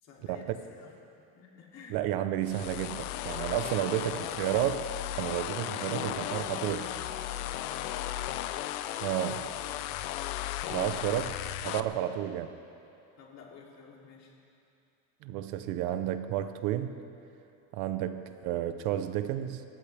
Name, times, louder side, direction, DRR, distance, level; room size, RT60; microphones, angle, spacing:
voice 1, 0.0-0.9 1.3-2.1 3.9-4.6 5.8-8.5 9.1-10.1 11.0-11.6 11.9-12.0 13.2-14.3, left 5 dB, 40° left, -2 dB, 3.1 m, -49 dB
voice 2, 1.9-4.8 5.2-6.8 9.0-9.5 10.7-12.6 15.2-17.0 17.7-19.6, right 12 dB, 60° right, 10 dB, 0.9 m, -31 dB
sound 1, 2.4-11.8, left 13 dB, 85° left, 0.8 m, -36 dB
27.0 x 15.0 x 3.5 m, 2.7 s
cardioid pair, 145°, 42 cm